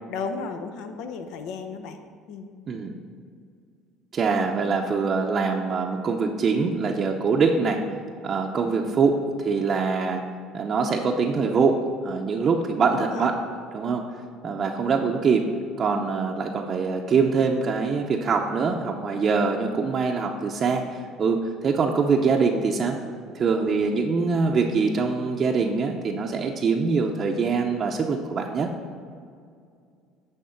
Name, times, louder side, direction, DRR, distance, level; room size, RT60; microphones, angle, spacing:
voice 1, 0.1-2.0 2.3-2.5 12.9-13.3 14.8-15.1 23.9-24.1, left 5 dB, 70° left, 7 dB, 0.7 m, -34 dB
voice 2, 4.1-7.8 8.2-10.2 10.5-13.3 13.7-14.0 14.4-15.4 15.8-23.0 23.3-28.7, right 5 dB, 40° right, 1 dB, 0.6 m, -24 dB
10.0 x 3.5 x 5.7 m, 2.2 s
supercardioid pair, 95°, 0 cm